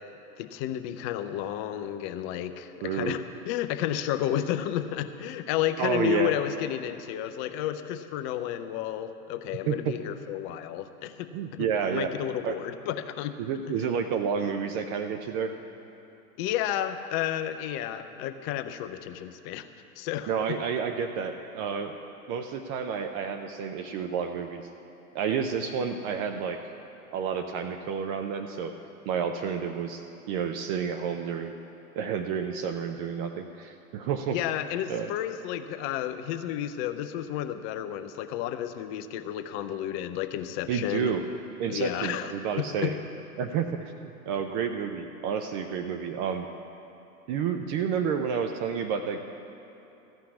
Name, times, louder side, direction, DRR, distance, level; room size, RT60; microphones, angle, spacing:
voice 1, 0.4-11.3 11.9-13.4 13.7-13.8 16.4-19.7 20.0-20.3 34.3-41.1 41.7-43.0, left 11 dB, 30° left, 9 dB, 0.5 m, -31 dB
voice 2, 2.8-3.2 5.8-6.3 9.7-9.9 11.3-12.1 12.4-12.6 13.4-15.5 20.3-22.0 22.3-24.6 25.1-26.6 27.1-28.7 29.1-31.6 32.0-34.4 34.9-35.1 40.7-41.2 41.6-42.9 43.4-46.5 47.3-49.2, right 7 dB, 35° right, 6 dB, 0.6 m, -30 dB
14.0 x 5.7 x 8.3 m, 2.9 s
hypercardioid pair, 100°, 46 cm